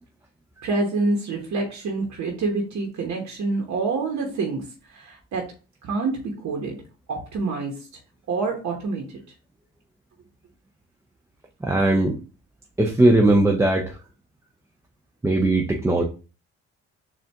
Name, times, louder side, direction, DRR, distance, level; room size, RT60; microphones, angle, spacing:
voice 1, 0.6-5.5 5.8-6.8 7.1-7.9 8.3-9.0, right 3 dB, 65° right, 0 dB, 1.0 m, -27 dB
voice 2, 11.6-12.2 12.8-14.0 15.2-16.0, right 2 dB, 10° right, 1 dB, 0.5 m, -19 dB
4.2 x 2.5 x 3.4 m, 0.34 s
cardioid pair, 90°, 30 cm